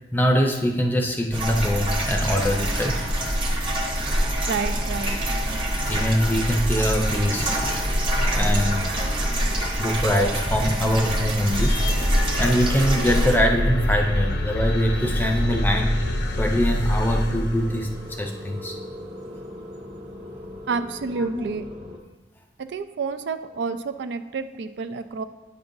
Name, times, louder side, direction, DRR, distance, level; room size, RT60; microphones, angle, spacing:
voice 1, 0.1-3.0 5.8-7.8 8.3-16.0 16.4-17.9 18.2-18.8 21.2-21.4, equal, 10° left, 2 dB, 0.5 m, -23 dB
sound 1, 1.3-13.4, right 1 dB, 30° right, 0.9 m, -25 dB
sound 2, 3.9-22.0, equal, 65° right, 1.1 m, -41 dB
voice 2, 4.4-5.2 20.7-21.6 22.6-25.2, right 4 dB, 80° right, 10 dB, 0.4 m, -29 dB
sound 3, 11.5-18.1, left 1 dB, 75° left, 0.7 m, -25 dB
8.8 x 5.3 x 2.6 m, 1.1 s
head